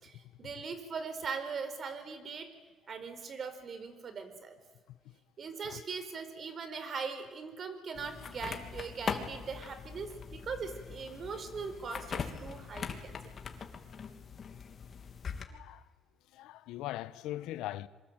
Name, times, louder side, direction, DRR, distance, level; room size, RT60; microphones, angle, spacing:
voice 1, 0.0-2.5 2.9-4.6 5.4-13.2, right 5 dB, 50° right, 4.8 m, -40 dB
sound 1, 8.0-15.5, left 6 dB, 50° left, 3.1 m, -41 dB
voice 2, 15.5-15.8 16.3-17.9, left 14 dB, 90° left, 1.1 m, -40 dB
26.5 x 24.0 x 9.1 m
cardioid pair, 90°, 0 cm